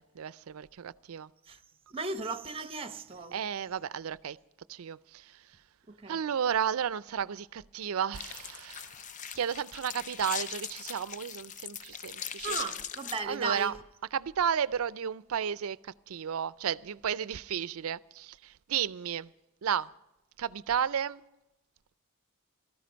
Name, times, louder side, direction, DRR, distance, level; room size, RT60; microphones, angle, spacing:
voice 1, 0.0-1.3 3.3-4.4 4.7-5.3 6.1-8.9 9.4-12.6 13.3-13.7 14.1-19.3 19.6-19.9 20.4-21.2, right 8 dB, 75° right, 0.4 m, -33 dB
voice 2, 1.9-3.4 5.9-6.2 12.4-13.7, right 4 dB, 25° right, 0.9 m, -36 dB
sound 1, 8.1-13.2, left 8 dB, 35° left, 0.4 m, -40 dB
18.0 x 13.5 x 5.2 m
head